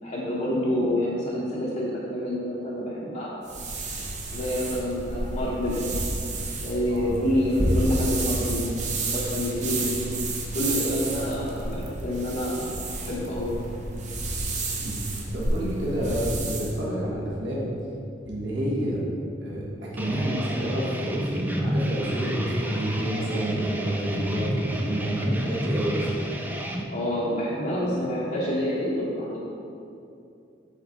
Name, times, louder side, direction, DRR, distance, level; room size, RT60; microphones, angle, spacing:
voice 1, 0.0-3.3 4.3-5.9 6.6-8.7 9.1-10.0 10.5-12.7 13.0-13.6 26.9-29.4, left 1 dB, 40° left, -7 dB, 0.8 m, -27 dB
sound 1, 3.5-16.8, right 2 dB, 40° right, 0.7 m, -30 dB
voice 2, 15.3-17.7 18.2-19.0 19.4-19.6 19.9-26.1, right 1 dB, 70° right, -6 dB, 1.4 m, -28 dB
sound 2, 20.0-26.8, equal, 10° right, 0.4 m, -31 dB
8.1 x 4.0 x 3.7 m, 2.6 s
head